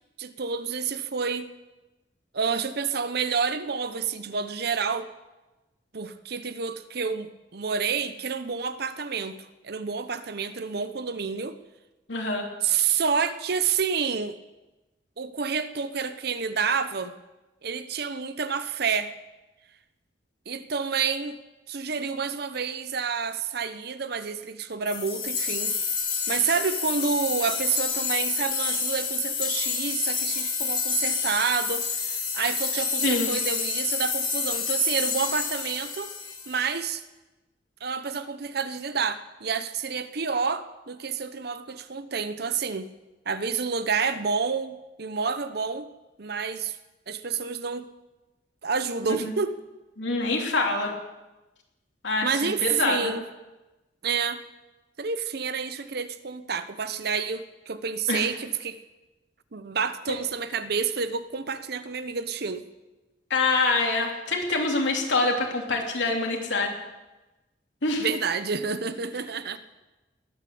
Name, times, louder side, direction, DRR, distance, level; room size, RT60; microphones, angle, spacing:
voice 1, 0.2-1.5 2.3-5.1 5.9-11.6 12.6-14.4 15.2-17.1 17.6-19.1 20.5-21.4 21.7-25.7 26.3-36.1 36.5-37.0 37.8-42.9 43.3-45.9 46.2-46.8 47.1-47.9 48.6-49.6 52.2-53.3 54.0-54.4 55.0-58.8 59.5-62.7 68.0-69.6, right 5 dB, 60° right, 12 dB, 0.9 m, -29 dB
voice 2, 12.1-12.4 33.0-33.3 49.1-49.3 50.0-50.9 52.0-53.0 58.1-58.3 63.3-66.7 67.8-68.1, left 3 dB, 85° left, 1 dB, 3.1 m, -25 dB
sound 1, 24.9-36.9, left 5 dB, 30° left, 3.1 m, -29 dB
20.0 x 9.3 x 7.0 m, 1.1 s
head